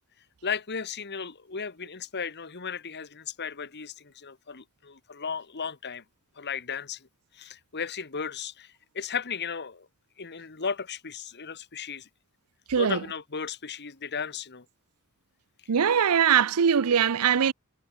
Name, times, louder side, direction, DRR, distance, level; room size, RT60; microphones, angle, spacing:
voice 1, 0.4-6.0 6.4-7.1 7.3-9.9 10.2-12.1 12.8-14.6 15.6-15.7, left 6 dB, 50° left, 1.5 m, -35 dB
voice 2, 15.7-17.5, right 7 dB, 85° right, 0.6 m, -21 dB
head